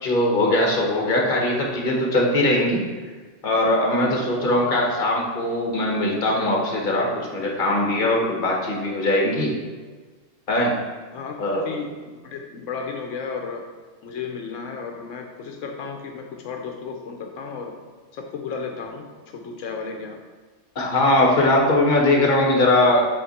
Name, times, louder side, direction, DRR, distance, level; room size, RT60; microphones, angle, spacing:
voice 1, 0.0-2.8 3.4-9.5 10.5-10.7 11.4-11.6 20.7-23.1, left 1 dB, 45° left, -1 dB, 1.3 m, -20 dB
voice 2, 3.9-4.3 11.1-11.9 12.2-13.7 14.0-17.7 18.1-19.0 19.3-20.2, left 5 dB, 85° left, 3 dB, 1.0 m, -33 dB
7.7 x 3.5 x 4.1 m, 1.4 s
omnidirectional pair, 1.3 m